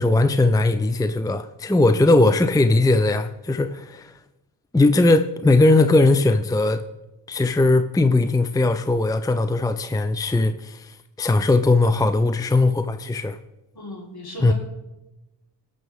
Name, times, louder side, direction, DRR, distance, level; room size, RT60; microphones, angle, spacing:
voice 1, 0.0-4.1 4.7-6.8 7.3-13.4 14.4-14.5, left 2 dB, 10° left, 0.6 m, -19 dB
voice 2, 13.7-14.5, left 1 dB, 55° left, 4.1 m, -35 dB
18.5 x 6.9 x 3.6 m
supercardioid pair, 45°, 44 cm